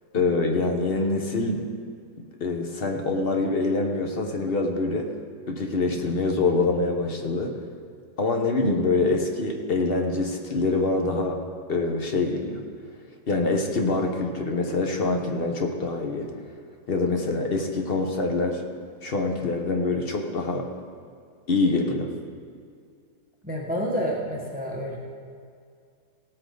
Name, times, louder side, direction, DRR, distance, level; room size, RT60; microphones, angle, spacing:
voice 1, 0.1-1.7 2.4-5.1 5.5-7.6 8.2-11.4 11.7-12.6 13.3-16.3 16.9-18.6 19.0-20.7 21.5-22.1, left 3 dB, 40° left, 3 dB, 1.1 m, -25 dB
voice 2, 23.4-25.0, equal, 5° right, -3 dB, 1.4 m, -29 dB
17.0 x 8.4 x 3.9 m, 2.2 s
omnidirectional pair, 1.7 m